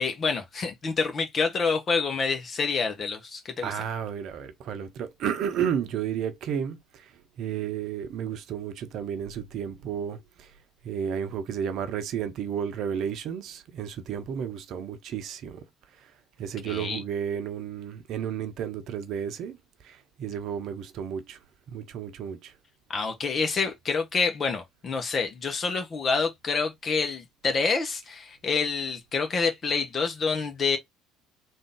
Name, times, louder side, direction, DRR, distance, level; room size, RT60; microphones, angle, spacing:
voice 1, 0.0-3.7 16.6-17.0 22.9-30.8, left 4 dB, 35° left, 1.1 m, -27 dB
voice 2, 3.6-10.5 10.8-15.6 16.0-16.1 16.4-21.4 21.7-22.5, right 8 dB, 55° right, 0.8 m, -32 dB
3.7 x 2.7 x 3.5 m
figure-of-eight pair, 60°, 0 cm